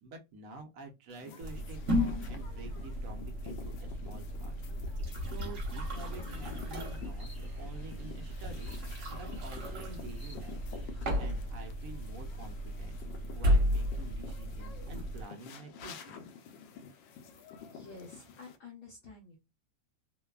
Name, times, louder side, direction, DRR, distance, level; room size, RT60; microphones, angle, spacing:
voice 1, 0.0-7.3 7.6-8.8 9.1-10.6 11.2-16.2, right 2 dB, 65° right, 0.8 m, -49 dB
sound 1, 1.1-18.6, left 6 dB, 80° left, 1.3 m, -50 dB
sound 2, 1.4-15.2, equal, 45° right, 1.1 m, -34 dB
sound 3, 6.3-11.3, left 1 dB, 20° right, 0.6 m, -48 dB
voice 2, 17.6-19.4, left 4 dB, 60° left, 1.0 m, -50 dB
3.2 x 2.2 x 2.2 m
omnidirectional pair, 2.1 m